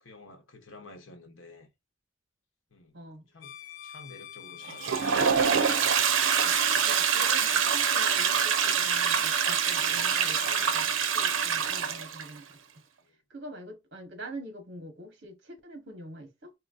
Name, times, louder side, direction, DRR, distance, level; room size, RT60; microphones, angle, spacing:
voice 1, 0.0-1.7 2.7-2.9 3.3-3.5 3.8-5.0 9.9-10.9, left 2 dB, 80° left, 1.2 m, -50 dB
voice 2, 2.9-3.3 6.4-6.6 6.8-12.8 13.1-16.5, right 1 dB, 60° right, 1.2 m, -45 dB
Bowed string instrument, 3.4-10.9, left 7 dB, 65° left, 1.7 m, -46 dB
Toilet flush, 4.6-12.3, right 7 dB, 80° right, 0.7 m, -25 dB
4.3 x 3.0 x 2.6 m
head